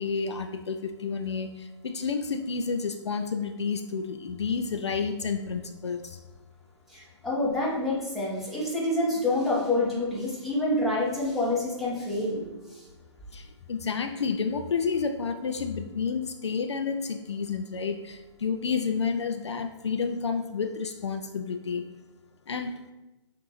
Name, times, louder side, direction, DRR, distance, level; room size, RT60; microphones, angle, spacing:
voice 1, 0.0-6.2 13.3-21.8 22.5-22.7, left 5 dB, 65° left, 7 dB, 0.4 m, -30 dB
voice 2, 6.9-12.8, left 2 dB, ahead, -8 dB, 1.2 m, -27 dB
6.5 x 2.6 x 3.0 m, 1.1 s
figure-of-eight pair, 130°, 16 cm